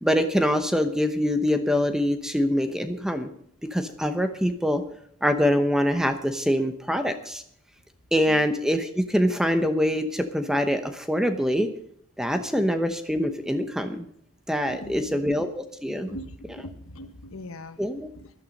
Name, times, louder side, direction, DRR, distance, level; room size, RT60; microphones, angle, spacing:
voice 1, 0.0-3.3 3.6-4.8 5.2-7.4 8.1-11.7 12.2-14.0 14.5-16.1 17.8-18.1, equal, 5° right, 7 dB, 0.8 m, -24 dB
voice 2, 14.7-15.3 15.9-17.8 18.2-18.3, left 1 dB, 75° left, 9 dB, 1.2 m, -41 dB
14.5 x 11.5 x 5.3 m, 0.69 s
head